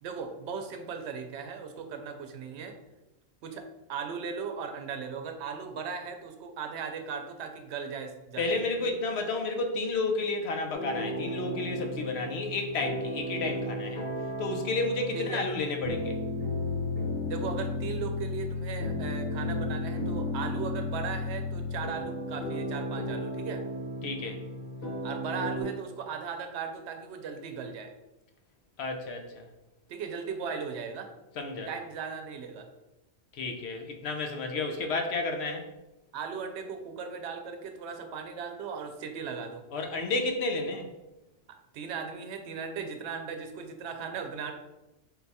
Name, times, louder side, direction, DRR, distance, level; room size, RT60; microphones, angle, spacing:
voice 1, 0.0-2.8 3.4-8.6 15.1-15.4 17.3-23.6 25.0-27.9 29.9-31.1 31.7-32.7 36.1-39.6 41.5-44.5, right 6 dB, 90° right, 5 dB, 0.9 m, -37 dB
voice 2, 8.4-14.1 14.4-16.2 24.0-24.4 28.8-29.5 31.4-31.7 33.3-35.7 39.7-40.9, left 3 dB, 75° left, 4 dB, 0.9 m, -31 dB
sound 1, 10.7-25.6, left 2 dB, 60° left, 1.3 m, -34 dB
3.9 x 2.3 x 4.1 m, 0.99 s
omnidirectional pair, 1.1 m